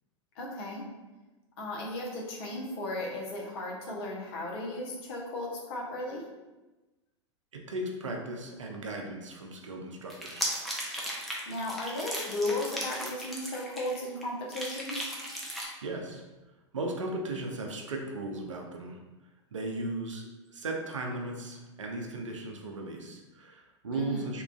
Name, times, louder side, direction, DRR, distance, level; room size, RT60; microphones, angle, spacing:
voice 1, 0.3-0.8 1.6-6.2 11.5-15.1 23.9-24.3, left 1 dB, 55° left, -2 dB, 0.8 m, -35 dB
voice 2, 7.5-10.6 15.8-16.2 16.7-19.0 19.5-24.4, right 2 dB, 85° right, 2 dB, 0.5 m, -36 dB
sound 1, 10.1-14.2 14.5-15.6, equal, ahead, 0.5 m, -36 dB
2.9 x 2.3 x 2.3 m, 1.1 s
hypercardioid pair, 100°, 16 cm